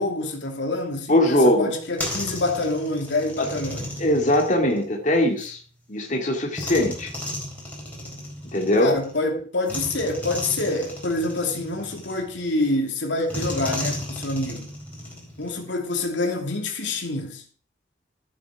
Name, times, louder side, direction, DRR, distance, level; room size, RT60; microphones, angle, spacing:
voice 1, 0.0-3.9 8.8-14.7 15.4-17.4, left 2 dB, 80° left, 2.7 m, -27 dB
voice 2, 1.1-1.7 3.4-3.5 4.0-5.6 5.9-7.1 8.5-9.0, left 1 dB, 45° left, 2.3 m, -20 dB
sound 1, 1.7-5.5 6.5-9.2 9.7-12.6 13.3-15.7, left 1 dB, 10° left, 4.2 m, -34 dB
14.0 x 8.4 x 4.9 m
head